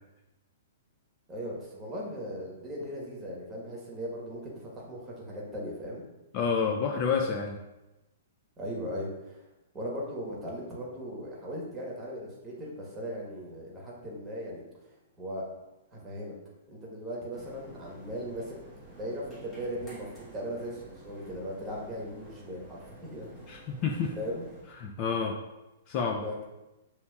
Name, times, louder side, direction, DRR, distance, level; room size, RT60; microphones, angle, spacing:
voice 1, 1.3-6.0 8.6-9.4 9.7-15.5 15.9-16.3 16.7-18.6 18.9-23.4 24.1-24.5 26.2-26.5, equal, 10° right, -4 dB, 1.1 m, -38 dB
voice 2, 6.3-7.6 23.5-24.2 24.8-25.4 25.9-26.2, left 5 dB, 35° left, 2 dB, 0.4 m, -29 dB
sound 1, 17.3-24.6, equal, 15° left, 1.0 m, -51 dB
6.8 x 2.9 x 2.3 m, 0.99 s
hypercardioid pair, 155°, 0 cm